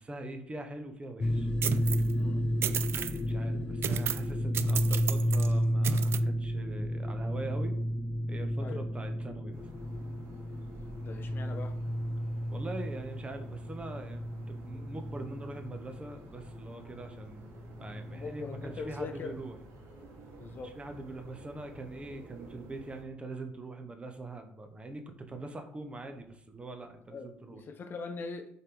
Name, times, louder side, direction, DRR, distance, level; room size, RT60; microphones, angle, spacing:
voice 1, 0.0-1.5 2.9-7.8 8.3-9.7 12.5-17.4 17.8-19.6 20.5-27.6, right 2 dB, 25° right, 6 dB, 1.1 m, -43 dB
sound 1, 1.2-19.5, equal, 20° left, 0.3 m, -32 dB
sound 2, 1.6-2.1 2.6-3.2 3.8-4.3 4.5-5.5 5.8-6.2, right 9 dB, 55° right, 0.4 m, -33 dB
sound 3, 9.5-23.0, right 2 dB, 70° right, 2.7 m, -52 dB
voice 2, 11.0-11.7 18.1-19.3 20.4-20.7 27.1-28.5, left 4 dB, 45° left, 6 dB, 1.0 m, -41 dB
6.6 x 4.3 x 3.9 m, 0.70 s
supercardioid pair, 75°, 5 cm